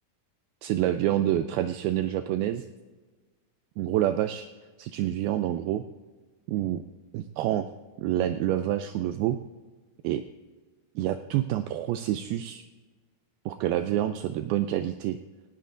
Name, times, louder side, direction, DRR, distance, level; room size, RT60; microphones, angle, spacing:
voice 1, 0.6-2.7 3.8-4.5 4.8-5.8 6.5-6.8 7.1-7.7 8.0-9.4 10.0-10.2 11.0-12.6 13.5-15.2, right 12 dB, 90° right, 9 dB, 2.1 m, -27 dB
17.5 x 17.0 x 2.5 m, 1.3 s
omnidirectional pair, 4.9 m